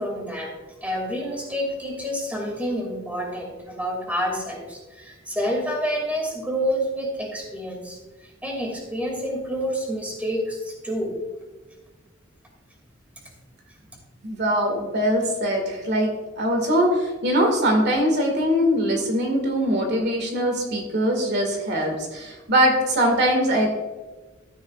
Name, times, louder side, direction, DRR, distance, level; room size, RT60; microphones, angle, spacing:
voice 1, 0.0-11.2 13.8-13.9, equal, 10° right, 0 dB, 2.5 m, -28 dB
voice 2, 14.2-16.1 16.4-23.7, equal, 55° right, 2 dB, 2.1 m, -22 dB
13.5 x 9.5 x 2.5 m, 1.2 s
head